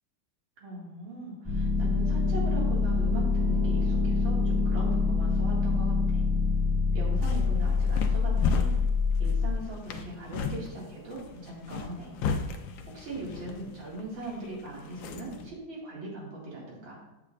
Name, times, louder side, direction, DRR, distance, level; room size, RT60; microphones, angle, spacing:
voice 1, 0.6-6.3 6.9-8.7 9.2-12.2 12.9-17.0, right 1 dB, 75° right, -4 dB, 2.8 m, -40 dB
sound 1, 1.5-9.5, left 4 dB, 15° right, 1.0 m, -25 dB
sound 2, 7.0-15.5, left 5 dB, 75° left, 1.3 m, -36 dB
8.2 x 7.9 x 2.4 m, 1.0 s
omnidirectional pair, 2.2 m